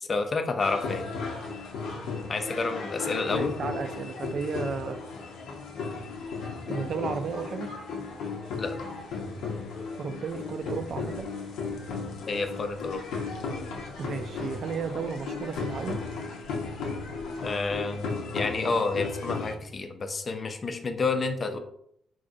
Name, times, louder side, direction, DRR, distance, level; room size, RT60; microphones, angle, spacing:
voice 1, 0.0-1.1 2.3-3.5 8.6-8.8 12.3-13.0 17.4-21.6, left 3 dB, 40° left, 7 dB, 0.4 m, -29 dB
sound 1, 0.6-19.5, left 4 dB, 90° left, 0.6 m, -35 dB
voice 2, 3.3-5.0 6.4-7.7 10.0-11.3 14.0-16.0, right 5 dB, 55° right, 7 dB, 0.3 m, -33 dB
3.9 x 2.4 x 2.6 m, 0.71 s
cardioid pair, 90°, 0 cm